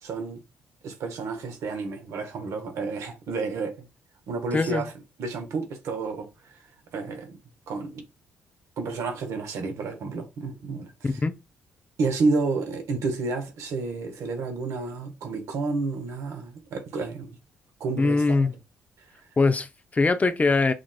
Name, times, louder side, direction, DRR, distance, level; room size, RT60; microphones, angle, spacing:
voice 1, 0.0-0.4 0.8-3.9 4.3-4.9 5.2-6.5 6.9-7.4 7.7-8.0 8.8-10.9 12.0-17.3 17.8-18.5, right 3 dB, 70° right, 0.9 m, -30 dB
voice 2, 4.5-4.9 11.0-11.3 18.0-18.5 19.4-20.7, left 3 dB, 30° left, 0.5 m, -22 dB
6.2 x 2.4 x 2.2 m
hypercardioid pair, 55°, 5 cm